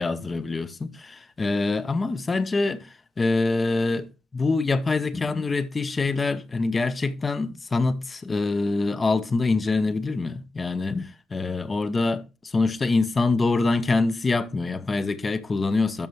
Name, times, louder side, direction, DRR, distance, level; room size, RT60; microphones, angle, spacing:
voice 1, 0.0-2.9 3.2-4.1 4.3-12.2 12.5-16.1, left 3 dB, 25° left, 0.9 m, -25 dB
12.5 x 5.3 x 3.2 m
cardioid pair, 110°, 0 cm